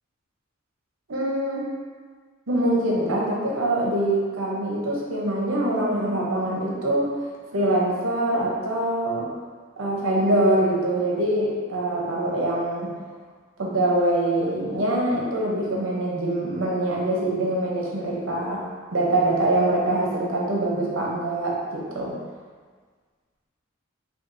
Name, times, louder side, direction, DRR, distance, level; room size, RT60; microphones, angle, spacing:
voice 1, 1.1-1.7 2.5-7.1 7.5-9.3 9.8-12.9 13.6-18.6 18.9-22.2, right 1 dB, 85° right, -3 dB, 0.8 m, -24 dB
5.7 x 2.3 x 2.7 m, 1.5 s
head